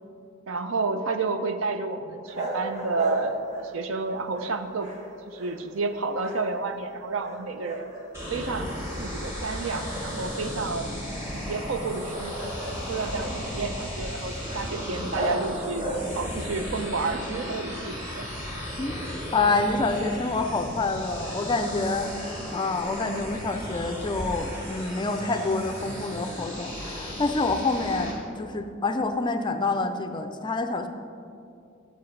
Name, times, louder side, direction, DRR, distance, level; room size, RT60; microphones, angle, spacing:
voice 1, 0.5-4.9 5.3-7.9 8.3-8.7 9.0-10.9 11.3-12.4 12.9-18.3 18.5-18.7 23.0-23.3 27.9-28.2, right 3 dB, 70° right, 8 dB, 0.5 m, -30 dB
sound 1, 2.3-4.0 4.3-5.9 6.1-6.9 7.2-8.4 8.8-9.0 9.6-16.4, right 1 dB, 35° right, 1.1 m, -37 dB
sound 2, 8.1-28.1, equal, 15° right, 1.6 m, -35 dB
voice 2, 19.3-30.9, left 3 dB, 25° left, 7 dB, 0.4 m, -27 dB
10.5 x 7.0 x 3.2 m, 2.5 s
head